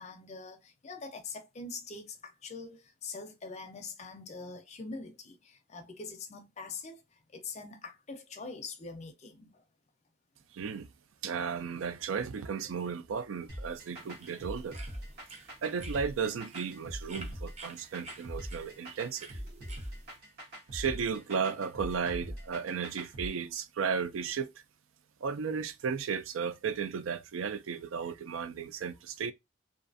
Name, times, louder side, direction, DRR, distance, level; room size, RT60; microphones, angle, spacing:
voice 1, 0.0-9.6, left 4 dB, 35° left, 0.5 m, -44 dB
voice 2, 10.5-10.9 11.2-14.8 15.6-19.4 20.7-24.5 25.2-29.3, right 6 dB, 90° right, 0.4 m, -34 dB
sound 1, 13.5-23.3, equal, 50° right, 0.9 m, -42 dB
sound 2, 13.6-20.2, right 3 dB, 35° right, 0.6 m, -52 dB
2.5 x 2.4 x 2.5 m
head